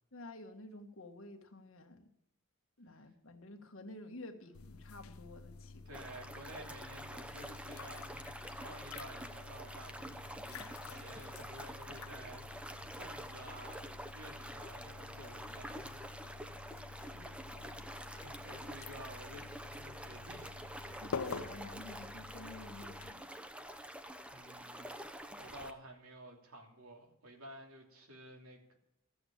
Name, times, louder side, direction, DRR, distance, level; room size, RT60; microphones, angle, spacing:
voice 1, 0.1-2.1 2.8-6.0 16.9-17.9 21.0-23.4, left 2 dB, 65° left, 5 dB, 1.6 m, -50 dB
sound 1, 4.5-23.1, left 4 dB, 80° left, 0.6 m, -49 dB
voice 2, 5.8-8.2 8.5-16.1 17.8-20.5 24.3-25.0 25.3-28.8, right 1 dB, 90° right, 2 dB, 2.9 m, -53 dB
sound 2, 5.9-25.7, right 1 dB, 5° right, 0.7 m, -47 dB
14.0 x 7.9 x 8.6 m, 0.82 s
head